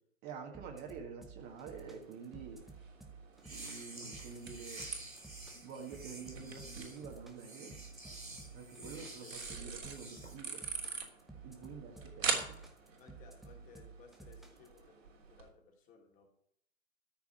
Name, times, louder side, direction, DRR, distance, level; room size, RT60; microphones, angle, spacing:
voice 1, 0.2-2.8 3.5-4.9 5.6-7.8 8.5-10.6 11.4-12.6, right 6 dB, 25° right, 1 dB, 1.8 m, -48 dB
sound 1, 0.5-14.8, right 4 dB, ahead, 0.6 m, -53 dB
sound 2, 1.4-15.5, right 5 dB, 65° right, 3.3 m, -45 dB
sound 3, 3.4-10.3, right 2 dB, 85° right, 6.6 m, -49 dB
voice 2, 8.7-9.8 11.8-12.3 13.0-16.3, left 4 dB, 20° left, 2 dB, 2.5 m, -60 dB
13.0 x 5.8 x 9.1 m, 0.69 s
figure-of-eight pair, 125°, 41 cm